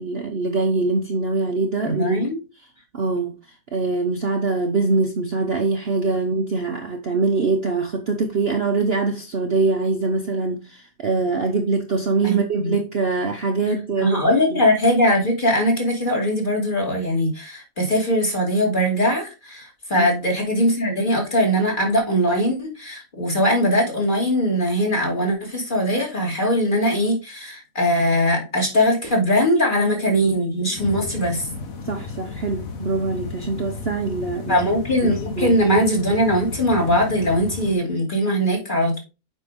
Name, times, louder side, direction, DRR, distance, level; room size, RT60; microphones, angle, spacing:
voice 1, 0.0-2.2 2.9-3.4 3.7-14.6 19.9-20.1 31.8-34.7 35.0-35.6, right 3 dB, 45° right, 1.0 m, -23 dB
voice 2, 1.8-2.4 12.2-12.7 14.0-31.5 34.5-39.0, equal, 30° left, 2.8 m, -21 dB
sound 1, 30.8-37.8, left 4 dB, 60° left, 1.6 m, -34 dB
8.1 x 5.3 x 3.8 m
omnidirectional pair, 1.7 m